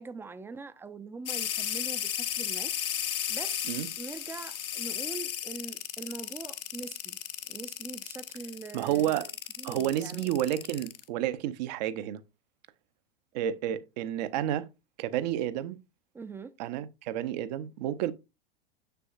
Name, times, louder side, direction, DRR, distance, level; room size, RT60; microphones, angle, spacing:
voice 1, 0.0-2.7 3.3-7.2 7.5-9.2 9.6-10.3 16.1-16.5, right 4 dB, 10° right, 0.4 m, -43 dB
sound 1, 1.3-11.0, left 10 dB, 70° left, 0.8 m, -34 dB
voice 2, 8.7-9.3 9.6-12.2 13.3-14.7 15.0-15.8 16.6-18.1, right 11 dB, 45° right, 0.7 m, -30 dB
6.8 x 6.8 x 2.4 m
figure-of-eight pair, 90°, 29 cm